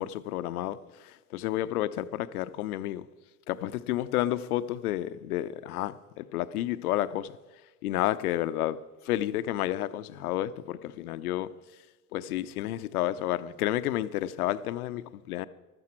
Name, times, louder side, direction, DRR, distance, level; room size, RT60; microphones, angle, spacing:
voice 1, 0.0-3.1 3.5-7.3 7.8-8.8 9.0-11.5 12.1-15.5, left 13 dB, 65° left, 0.8 m, -31 dB
15.0 x 12.5 x 4.5 m
figure-of-eight pair, 80°, 47 cm